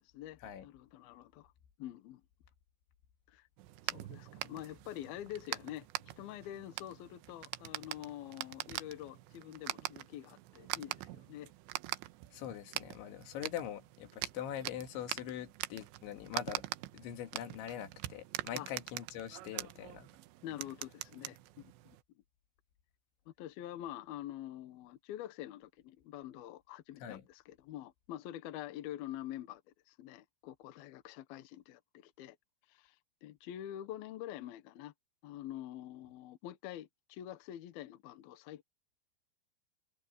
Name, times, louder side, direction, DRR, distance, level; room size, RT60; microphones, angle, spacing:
voice 1, 0.0-1.5 1.8-2.2 3.3-3.5 3.8-11.5 18.5-18.7 20.4-22.0 23.3-29.6 29.9-32.4 32.7-33.0 33.2-34.9 35.2-38.6, left 12 dB, 70° left, 2.7 m, -46 dB
sound 1, 3.6-22.0, right 17 dB, 90° right, 3.0 m, -44 dB
voice 2, 12.3-16.7 16.9-20.1 27.0-27.3, left 10 dB, 85° left, 4.4 m, -43 dB
omnidirectional pair, 5.2 m